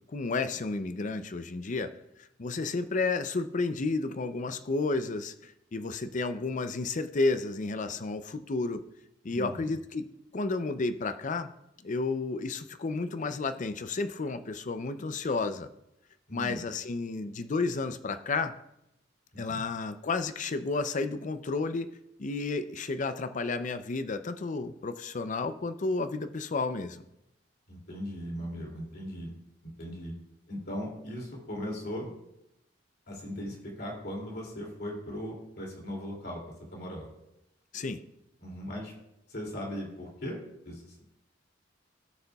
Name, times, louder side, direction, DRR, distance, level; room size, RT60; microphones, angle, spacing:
voice 1, 0.1-1.9 2.4-8.8 9.2-10.1 10.3-11.5 11.8-15.7 16.3-18.5 19.4-21.9 22.2-27.0 37.7-38.0, left 3 dB, 40° left, 10 dB, 0.5 m, -31 dB
voice 2, 9.3-9.7 16.3-16.6 19.3-19.6 27.7-29.3 29.8-30.1 30.5-32.1 33.1-36.4 36.7-37.1 38.4-38.9 39.3-40.4 40.6-41.0, equal, 60° left, -1 dB, 2.6 m, -38 dB
16.5 x 6.8 x 2.3 m, 0.83 s
head